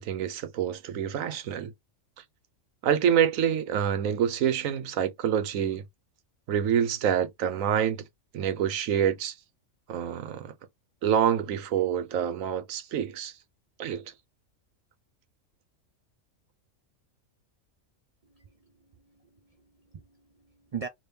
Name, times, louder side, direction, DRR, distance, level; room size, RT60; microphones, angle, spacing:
voice 1, 0.0-1.7 2.8-5.8 6.5-8.0 8.3-9.3 9.9-10.5 11.0-13.3 13.8-14.0, right 9 dB, 90° right, 1.1 m, -27 dB
voice 2, 18.2-20.9, right 6 dB, 65° right, 0.3 m, -42 dB
3.4 x 2.8 x 2.7 m
omnidirectional pair, 1.4 m